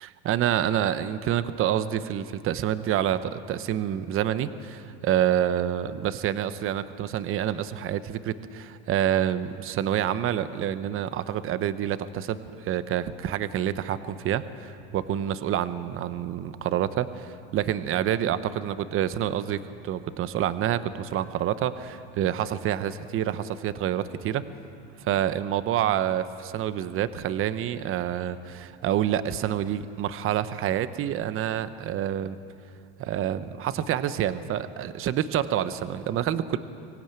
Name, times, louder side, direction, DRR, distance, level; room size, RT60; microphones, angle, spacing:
voice 1, 0.0-24.5 25.0-32.4 33.0-36.6, right 10 dB, 35° right, 13 dB, 1.0 m, -27 dB
24.0 x 17.0 x 9.0 m, 2.5 s
supercardioid pair, 130°, 35 cm